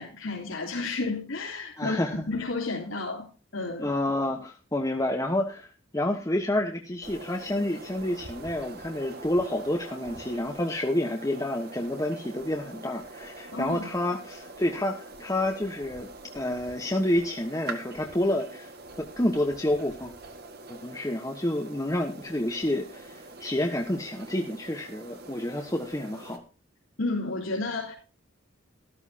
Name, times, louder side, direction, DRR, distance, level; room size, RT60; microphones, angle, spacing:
voice 1, 0.0-2.0 2.3-3.9 13.5-13.9 27.0-27.9, left 3 dB, 70° left, -5 dB, 3.5 m, -31 dB
voice 2, 1.8-2.2 3.8-16.1 16.3-18.7 19.0-20.1 20.7-26.4, left 1 dB, 15° left, 2 dB, 1.1 m, -29 dB
sound 1, 7.0-26.4, right 3 dB, 50° right, 1.8 m, -44 dB
13.5 x 13.5 x 2.8 m, 0.33 s
head